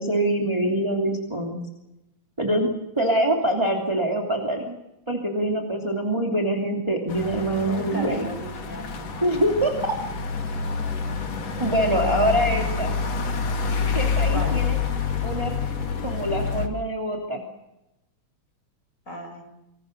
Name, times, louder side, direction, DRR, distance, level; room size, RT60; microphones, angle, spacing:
voice 1, 0.0-1.6 2.4-2.7 3.0-4.8 5.1-8.3 9.2-10.0 11.6-12.9 13.9-14.8 15.2-15.5 16.0-17.4, right 1 dB, 10° right, 2 dB, 2.5 m, -24 dB
sound 1, 7.1-16.7, left 6 dB, 55° left, 3.5 m, -27 dB
voice 2, 7.6-8.9 14.3-14.6 19.1-19.4, equal, 25° left, 4 dB, 7.4 m, -34 dB
27.5 x 26.0 x 6.6 m, 0.93 s
omnidirectional pair, 3.5 m